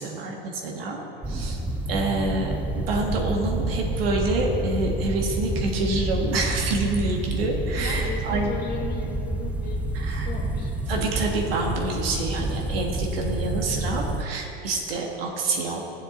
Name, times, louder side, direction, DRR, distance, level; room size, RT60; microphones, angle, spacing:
voice 1, 0.0-1.6 1.9-2.5 2.9-8.5 9.9-10.3 10.9-15.8, right 2 dB, 75° right, 1 dB, 1.5 m, -27 dB
voice 2, 1.1-1.6 7.8-10.7, left 4 dB, 30° left, -1 dB, 1.6 m, -37 dB
sound 1, 1.2-14.2, right 2 dB, 5° right, 0.3 m, -28 dB
15.5 x 7.3 x 2.6 m, 2.8 s
hypercardioid pair, 110°, 30 cm